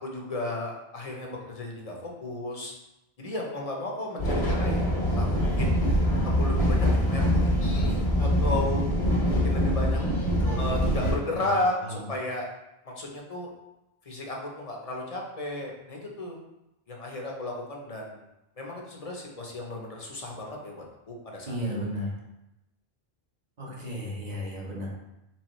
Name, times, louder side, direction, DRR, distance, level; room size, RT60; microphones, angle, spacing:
voice 1, 0.0-2.7 3.2-4.9 5.2-5.8 6.4-8.8 9.3-10.0 10.6-12.5 12.8-13.5 14.1-16.4 16.9-18.2 18.6-21.9, left 2 dB, 40° left, -1 dB, 0.8 m, -34 dB
sound 1, 4.2-11.1, equal, 80° left, 1.6 m, -24 dB
voice 2, 10.4-11.6 11.8-12.0 21.5-22.1 23.6-24.9, equal, 45° right, -4 dB, 1.1 m, -34 dB
4.7 x 3.6 x 3.1 m, 0.92 s
omnidirectional pair, 1.1 m